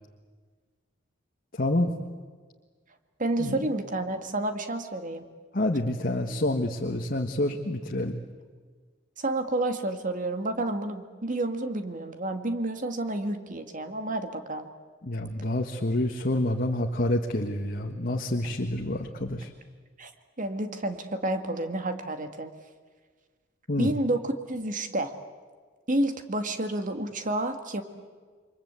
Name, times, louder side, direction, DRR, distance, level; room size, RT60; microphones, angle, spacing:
voice 1, 1.5-1.9 3.4-3.6 5.5-8.2 15.0-19.5 23.7-23.9, left 1 dB, 50° left, 3 dB, 1.5 m, -28 dB
voice 2, 3.2-5.2 9.2-14.7 20.0-20.1 20.4-22.5 23.8-25.1 25.9-27.8, right 1 dB, 45° right, 7 dB, 2.1 m, -30 dB
29.0 x 23.5 x 8.3 m, 1.5 s
head